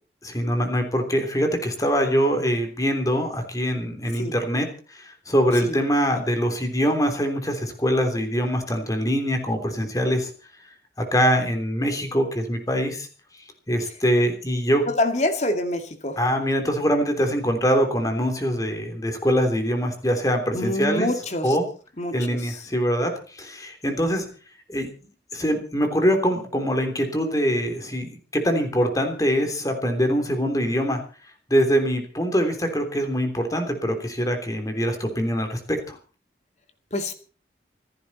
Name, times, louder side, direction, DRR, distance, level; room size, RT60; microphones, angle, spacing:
voice 1, 0.2-4.7 4.9-10.3 11.1-13.1 13.7-14.8 16.2-21.1 21.4-21.6 22.1-24.2 24.7-24.9 25.3-31.0 31.5-36.0, equal, 20° left, 5 dB, 3.4 m, -23 dB
voice 2, 14.9-16.2 20.5-21.6 22.0-22.1 22.5-22.6 36.9-37.1, left 1 dB, 40° left, 6 dB, 2.5 m, -25 dB
27.5 x 10.5 x 4.3 m, 0.38 s
head